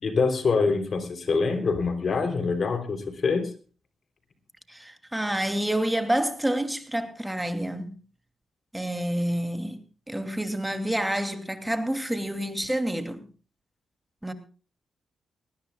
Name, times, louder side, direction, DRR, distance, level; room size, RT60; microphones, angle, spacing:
voice 1, 0.0-3.5, left 4 dB, 55° left, 3.5 m, -25 dB
voice 2, 4.7-7.9 8.7-9.8 10.1-13.3 14.2-14.3, right 1 dB, 10° right, 2.8 m, -28 dB
20.0 x 19.0 x 2.4 m
supercardioid pair, 55°, 0 cm